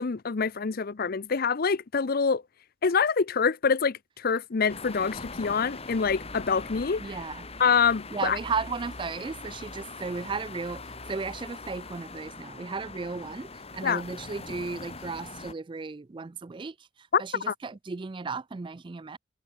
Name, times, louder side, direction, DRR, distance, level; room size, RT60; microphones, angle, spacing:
voice 1, 0.0-2.4 2.8-7.0 7.6-8.4 13.8-14.0 17.1-17.2 17.5-17.6, left 5 dB, 50° left, 0.6 m, -25 dB
sound 1, 4.7-15.5, left 3 dB, 30° left, 3.4 m, -42 dB
voice 2, 7.0-7.5 8.1-19.2, right 4 dB, 25° right, 0.4 m, -35 dB
head